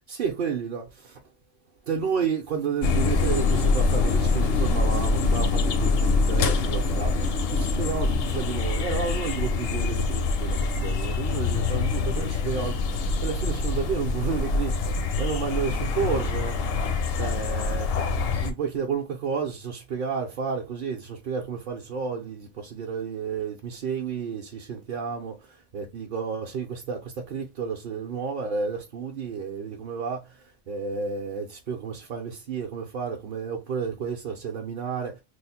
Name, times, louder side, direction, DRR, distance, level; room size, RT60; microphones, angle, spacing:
voice 1, 0.1-0.8 1.9-5.9 6.3-7.1 7.5-12.8 13.2-14.7 15.2-16.5 17.2-17.9 18.3-25.3 25.7-27.0 27.3-30.2 30.7-35.1, right 6 dB, 60° right, 0.7 m, -31 dB
sound 1, 2.8-18.5, left 4 dB, 70° left, 0.8 m, -25 dB
3.1 x 2.0 x 4.1 m
omnidirectional pair, 1.1 m